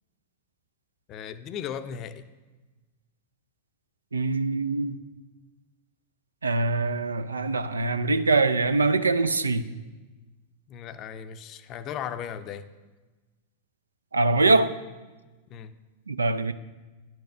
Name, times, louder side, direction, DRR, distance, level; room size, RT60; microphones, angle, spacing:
voice 1, 1.1-2.3 10.7-12.7 15.5-15.7, left 8 dB, 35° left, 0.6 m, -36 dB
voice 2, 4.1-5.0 6.4-9.7 14.1-14.8 16.1-16.5, right 3 dB, 75° right, 0.4 m, -23 dB
10.0 x 6.1 x 6.4 m
figure-of-eight pair, 90°, 0 cm